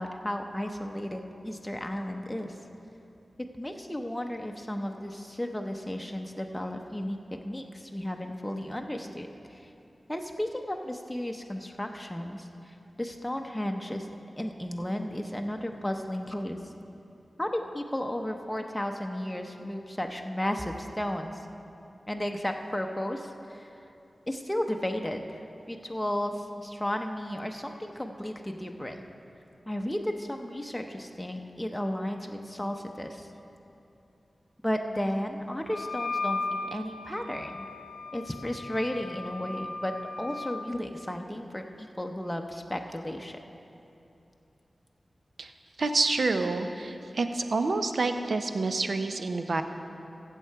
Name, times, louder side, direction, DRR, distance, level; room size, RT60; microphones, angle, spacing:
voice 1, 0.0-2.6 3.4-7.2 7.4-9.7 10.1-14.1 14.4-16.6 17.4-21.4 22.1-23.7 24.3-29.0 29.7-33.3 34.6-37.7 38.1-43.4, left 1 dB, 10° left, 3 dB, 0.7 m, -34 dB
Wind instrument woodwind instrument, 35.7-40.7, left 3 dB, 70° left, 0.4 m, -36 dB
voice 2, 45.8-49.6, right 3 dB, 75° right, 7 dB, 0.6 m, -28 dB
15.0 x 7.4 x 4.6 m, 2.9 s
cardioid pair, 45°, 0 cm